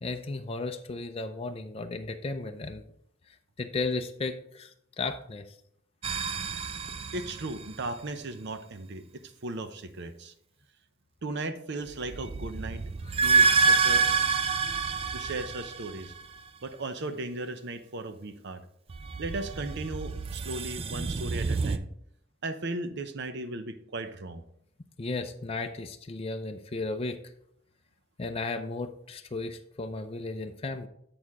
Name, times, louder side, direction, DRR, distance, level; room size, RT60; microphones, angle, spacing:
voice 1, 0.0-2.8 3.6-5.4 25.0-27.2 28.2-30.9, left 3 dB, 30° left, 5 dB, 0.4 m, -34 dB
sound 1, 6.0-8.0 11.9-16.4 18.9-21.8, right 4 dB, 30° right, 0.4 m, -28 dB
voice 2, 7.1-10.3 11.2-12.8 13.2-14.0 15.1-16.1 16.6-18.6 19.2-21.9 22.4-24.4, right 2 dB, 60° right, 10 dB, 0.7 m, -36 dB
7.8 x 6.4 x 3.6 m, 0.70 s
head